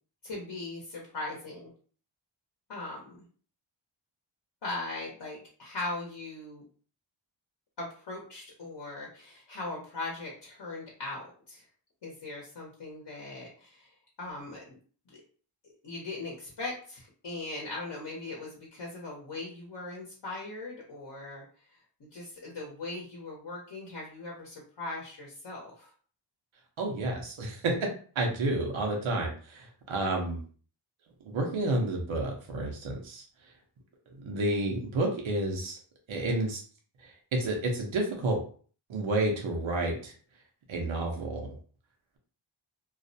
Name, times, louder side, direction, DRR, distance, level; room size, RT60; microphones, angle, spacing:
voice 1, 0.2-1.7 2.7-3.2 4.6-6.6 7.8-11.6 12.0-13.9 14.2-14.8 15.8-21.4 22.0-25.9, left 2 dB, 60° left, -3 dB, 0.8 m, -39 dB
voice 2, 26.8-27.9 28.1-30.4 31.2-33.5 34.1-35.8 36.1-36.6 37.0-38.4 38.9-40.1 40.7-41.6, right 2 dB, 85° right, 0 dB, 0.7 m, -30 dB
2.4 x 2.0 x 2.6 m, 0.43 s
wide cardioid pair, 100°, 46 cm